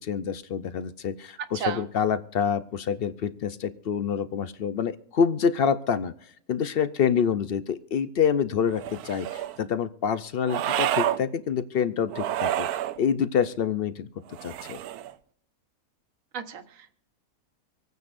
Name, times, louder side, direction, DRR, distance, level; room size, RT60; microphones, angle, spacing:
voice 1, 0.0-6.1 6.5-12.7 13.0-14.1 14.4-14.8, left 7 dB, 70° left, 13 dB, 0.5 m, -27 dB
voice 2, 1.5-1.9 16.3-17.0, right 8 dB, 60° right, 9 dB, 1.4 m, -34 dB
sound 1, 8.7-9.6 10.5-11.2 12.1-13.0 14.3-15.1, right 11 dB, 75° right, 1.1 m, -29 dB
26.0 x 9.3 x 2.5 m, 0.67 s
omnidirectional pair, 1.7 m